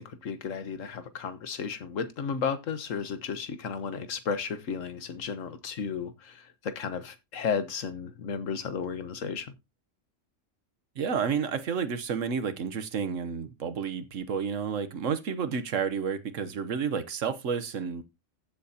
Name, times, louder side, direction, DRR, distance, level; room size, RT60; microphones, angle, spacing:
voice 1, 0.0-9.5, left 6 dB, 80° left, 1.5 m, -33 dB
voice 2, 11.0-18.0, right 6 dB, 80° right, 1.3 m, -30 dB
15.0 x 7.6 x 2.8 m
omnidirectional pair, 1.3 m